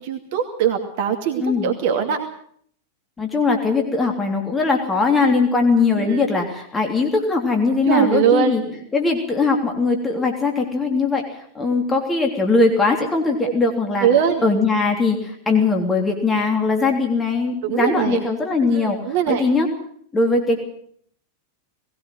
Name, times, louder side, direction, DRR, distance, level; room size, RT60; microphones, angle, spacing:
voice 1, 0.0-2.2 6.0-6.2 7.9-8.6 13.4-13.5 14.0-14.4 17.6-18.2 18.7-19.4, right 8 dB, 50° right, 5 dB, 2.4 m, -21 dB
voice 2, 3.2-8.6 8.9-11.2 11.5-14.1 14.4-19.0 19.3-19.7 20.1-20.6, left 3 dB, 15° left, 2 dB, 3.3 m, -20 dB
20.0 x 17.5 x 7.7 m, 0.62 s
figure-of-eight pair, 90°, 0 cm